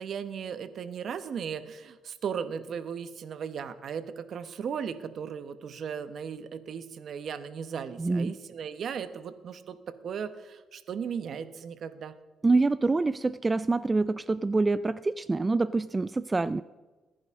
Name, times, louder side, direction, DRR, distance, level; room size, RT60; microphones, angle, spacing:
voice 1, 0.0-9.8 10.0-12.1, right 7 dB, 60° right, 11 dB, 1.0 m, -36 dB
voice 2, 8.0-8.3 12.4-16.6, right 3 dB, 20° right, 16 dB, 0.3 m, -26 dB
20.5 x 10.5 x 3.7 m, 1.2 s
cardioid pair, 90°, 0 cm